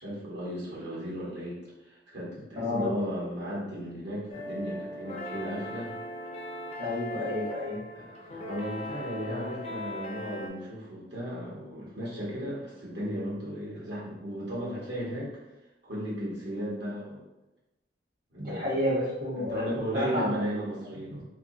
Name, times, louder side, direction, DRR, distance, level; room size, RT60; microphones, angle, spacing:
voice 1, 0.0-5.9 7.9-15.3 15.8-17.3 18.3-18.7 19.4-21.2, equal, 80° right, -7 dB, 1.4 m, -35 dB
voice 2, 2.6-2.9 6.8-7.8 18.4-20.3 21.1-21.2, left 1 dB, 50° right, -6 dB, 1.1 m, -30 dB
Ambient Lo-Fi guitar chords, 4.3-10.5, left 1 dB, 35° left, 0.4 m, -39 dB
2.8 x 2.7 x 2.6 m, 1.0 s
head